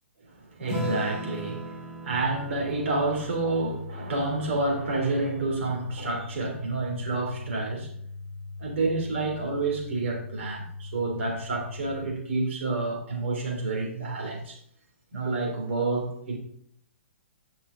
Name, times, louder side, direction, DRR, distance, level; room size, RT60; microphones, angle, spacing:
voice 1, 0.3-7.9 8.6-14.6 15.1-16.4, right 3 dB, 65° right, 3.3 m, -29 dB
Acoustic guitar / Strum, 0.7-5.5, left 1 dB, 10° right, 2.7 m, -38 dB
sound 1, 2.1-12.1, left 3 dB, 5° left, 2.9 m, -40 dB
11.0 x 6.0 x 3.7 m
hypercardioid pair, 130°, 7 cm